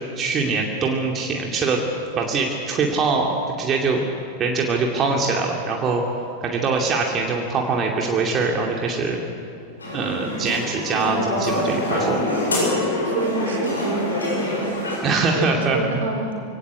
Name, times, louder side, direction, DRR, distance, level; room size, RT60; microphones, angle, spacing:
voice 1, 0.2-1.8 2.2-4.0 4.4-6.0 6.4-9.2 9.9-12.3 15.0-16.0, right 4 dB, 25° right, 0 dB, 2.6 m, -23 dB
sound 1, 9.8-15.0, left 1 dB, 75° left, 7.9 m, -25 dB
voice 2, 13.0-16.4, right 3 dB, 60° right, 1 dB, 4.3 m, -29 dB
24.5 x 17.5 x 8.2 m, 2.7 s
figure-of-eight pair, 90°, 0 cm